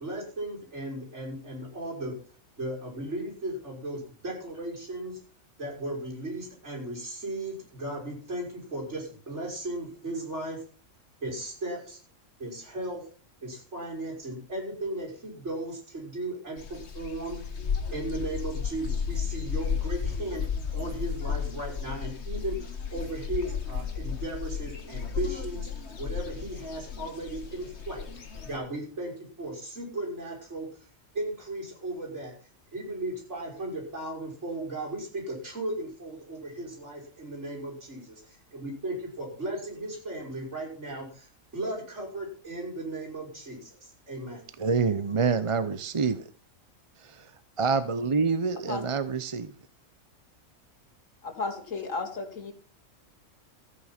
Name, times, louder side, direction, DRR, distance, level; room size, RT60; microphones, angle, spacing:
voice 1, 0.0-2.2 2.6-5.1 5.6-10.6 11.2-12.0 12.4-13.0 13.4-17.4 17.9-20.5 20.7-25.7 26.0-28.1 28.4-30.7 31.1-32.3 32.7-38.2 38.5-44.4, right 1 dB, 60° right, -1 dB, 6.3 m, -36 dB
sound 1, 16.6-28.6, left 7 dB, 55° left, 1.7 m, -33 dB
voice 2, 44.6-46.3 47.0-47.3 47.6-49.5, right 5 dB, 35° right, 13 dB, 0.6 m, -27 dB
voice 3, 51.2-52.5, left 3 dB, 75° left, 3 dB, 2.7 m, -33 dB
14.0 x 9.5 x 5.8 m, 0.41 s
omnidirectional pair, 1.4 m